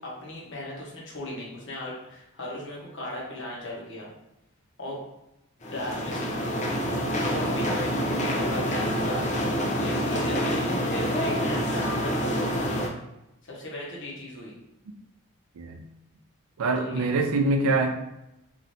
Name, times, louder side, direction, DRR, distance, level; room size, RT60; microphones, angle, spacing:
voice 1, 0.0-4.1 4.8-5.0 5.7-6.2 7.2-9.4 9.8-12.8 13.4-14.5 16.8-17.0, left 1 dB, 55° left, -4 dB, 1.0 m, -37 dB
sound 1, 5.6-12.9, equal, 30° left, 0.4 m, -27 dB
voice 2, 16.6-18.0, right 2 dB, 75° right, 5 dB, 0.4 m, -24 dB
3.1 x 2.7 x 2.6 m, 0.89 s
head